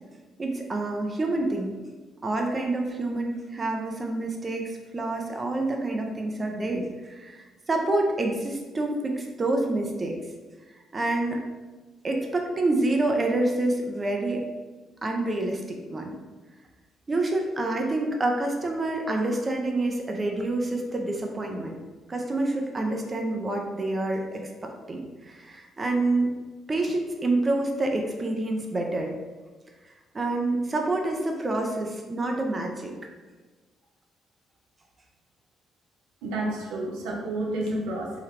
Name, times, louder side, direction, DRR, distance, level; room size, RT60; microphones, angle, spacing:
voice 1, 0.4-1.7 2.2-10.2 10.9-11.4 12.0-14.4 15.0-16.2 17.1-21.8 22.1-26.3 26.7-29.1 30.1-32.9, right 2 dB, 35° right, 2 dB, 0.5 m, -27 dB
voice 2, 36.2-38.2, right 1 dB, 80° right, -2 dB, 0.5 m, -30 dB
3.2 x 2.3 x 3.2 m, 1.3 s
hypercardioid pair, 55°, 0 cm